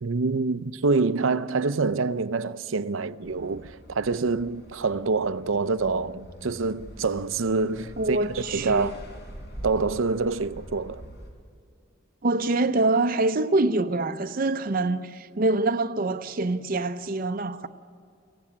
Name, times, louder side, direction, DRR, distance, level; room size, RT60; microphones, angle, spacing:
voice 1, 0.0-8.9 9.6-11.0, right 4 dB, 85° right, 0.6 m, -26 dB
sound 1, 3.2-11.3, equal, 55° left, 4.3 m, -43 dB
voice 2, 8.0-8.9 12.2-17.7, right 2 dB, 45° right, 0.6 m, -25 dB
23.5 x 16.5 x 8.7 m
head